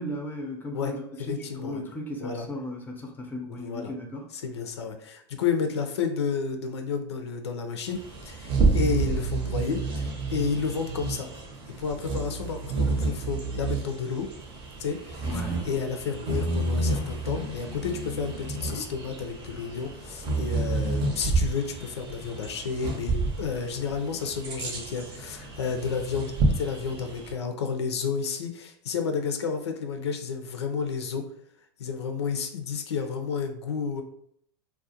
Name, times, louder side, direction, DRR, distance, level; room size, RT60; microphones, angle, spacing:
voice 1, 0.0-4.3 15.2-15.7, left 1 dB, 15° left, 2 dB, 0.6 m, -36 dB
voice 2, 1.2-1.8 2.2-2.5 3.5-3.9 4.3-11.3 11.7-14.3 14.8-31.2 31.8-34.0, left 5 dB, 85° left, 6 dB, 0.5 m, -31 dB
Bird vocalization bird call bird song, 7.9-27.3, right 3 dB, 40° right, 0.7 m, -30 dB
2.4 x 2.1 x 2.7 m, 0.67 s
hypercardioid pair, 105°, 14 cm